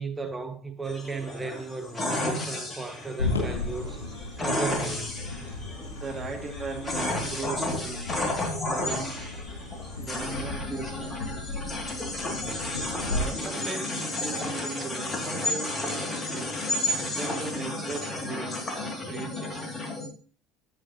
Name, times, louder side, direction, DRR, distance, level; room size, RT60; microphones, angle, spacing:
voice 1, 0.0-4.1 4.4-5.2, right 3 dB, 15° right, 1.5 m, -35 dB
sound 1, 0.8-20.1, left 1 dB, 25° left, 2.4 m, -32 dB
sound 2, 3.2-13.2, left 3 dB, 80° left, 2.7 m, -35 dB
voice 2, 6.0-8.1 8.7-9.2 10.0-11.2 13.0-16.6 17.1-19.8, right 4 dB, 30° right, 2.2 m, -38 dB
9.5 x 8.3 x 2.9 m
figure-of-eight pair, 65°, 0 cm